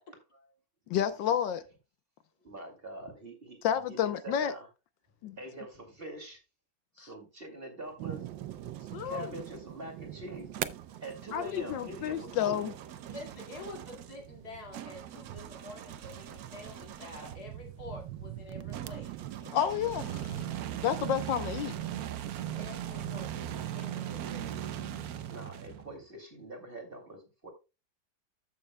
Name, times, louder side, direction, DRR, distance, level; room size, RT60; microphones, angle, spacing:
voice 1, 0.9-1.6 3.6-4.5 5.2-5.4 7.0-7.1 8.9-9.3 11.3-12.7 19.5-20.4 20.8-21.7, left 9 dB, 80° left, 1.4 m, -30 dB
voice 2, 2.4-4.7 5.3-6.4 6.9-8.3 8.8-10.5 11.0-12.7 25.3-27.5, right 1 dB, 30° right, 2.5 m, -44 dB
sound 1, 7.8-9.6 10.5-17.5 18.7-26.0, right 11 dB, 65° right, 1.0 m, -41 dB
sound 2, 8.0-23.3, right 13 dB, 90° right, 1.4 m, -44 dB
voice 3, 13.1-19.6 22.6-24.6, left 2 dB, 55° left, 2.8 m, -48 dB
14.0 x 6.7 x 2.2 m
omnidirectional pair, 2.0 m